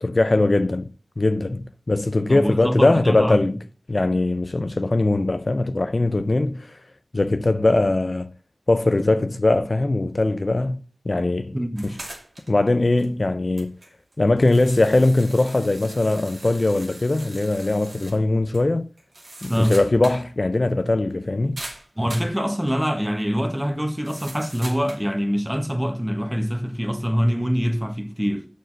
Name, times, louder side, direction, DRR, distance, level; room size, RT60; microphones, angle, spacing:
voice 1, 0.0-0.9 1.2-3.6 3.9-6.8 7.1-8.3 8.7-10.8 11.1-11.6 11.8-11.9 12.5-13.8 14.2-18.9 19.4-21.6, left 2 dB, 55° left, 0.6 m, -21 dB
voice 2, 2.3-3.4 11.5-11.9 19.5-19.8 22.0-28.5, equal, 10° right, 1.6 m, -24 dB
sound 1, 11.8-12.6 13.0-13.1 13.6-18.2 18.5-18.6 19.0-20.3 20.5-20.6 21.6-22.4 24.0-25.1, right 1 dB, 70° right, 2.9 m, -41 dB
6.7 x 6.5 x 7.7 m
wide cardioid pair, 45°, 0 cm